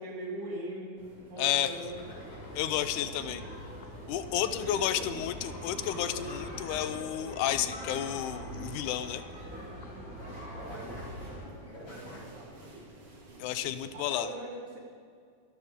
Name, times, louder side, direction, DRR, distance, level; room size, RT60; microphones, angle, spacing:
voice 1, 0.0-2.0 3.2-3.4 4.4-5.0 10.2-11.4 11.6-12.9 13.9-14.8, right 1 dB, 70° right, -3 dB, 4.2 m, -42 dB
sound 1, 1.0-14.0, right 2 dB, 50° right, 3.0 m, -53 dB
voice 2, 1.4-1.7 2.6-3.4 4.1-9.2 13.4-14.3, left 12 dB, 80° left, 12 dB, 2.0 m, -31 dB
sound 2, 1.4-3.0 4.2-9.3 9.6-9.9 10.2-12.4, left 1 dB, 60° left, 4.2 m, -50 dB
sound 3, 1.9-11.4, equal, 5° right, 4.2 m, -43 dB
23.5 x 11.5 x 3.7 m, 2.3 s
omnidirectional pair, 3.6 m